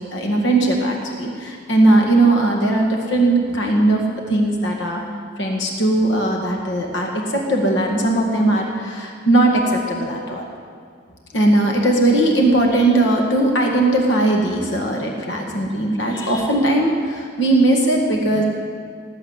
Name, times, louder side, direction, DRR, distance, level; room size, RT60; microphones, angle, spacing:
voice 1, 0.0-4.0 4.3-5.0 5.4-10.4 11.3-18.4, right 2 dB, 70° left, 0 dB, 2.0 m, -18 dB
18.5 x 7.6 x 8.1 m, 2.1 s
head